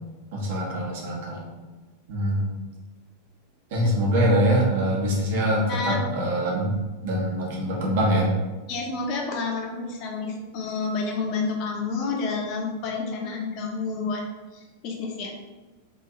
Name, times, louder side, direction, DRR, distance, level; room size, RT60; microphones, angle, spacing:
voice 1, 0.3-1.5 2.1-2.5 3.7-6.8 7.0-8.3, equal, 50° right, -2 dB, 1.0 m, -24 dB
voice 2, 5.7-6.0 8.7-14.2 14.5-15.3, left 4 dB, 40° left, 1 dB, 0.8 m, -29 dB
3.1 x 2.7 x 3.7 m, 1.2 s
figure-of-eight pair, 90°, 0 cm